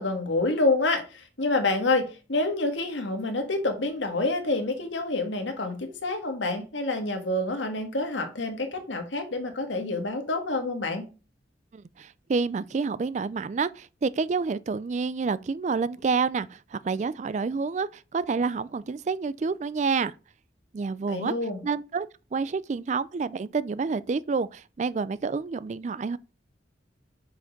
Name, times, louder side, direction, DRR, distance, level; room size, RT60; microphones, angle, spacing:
voice 1, 0.0-11.1 21.1-21.6, left 2 dB, 80° left, 1.7 m, -27 dB
voice 2, 11.7-20.1 20.7-21.3 21.6-22.1 22.3-26.2, right 4 dB, 40° right, 0.3 m, -28 dB
5.9 x 5.0 x 5.2 m
head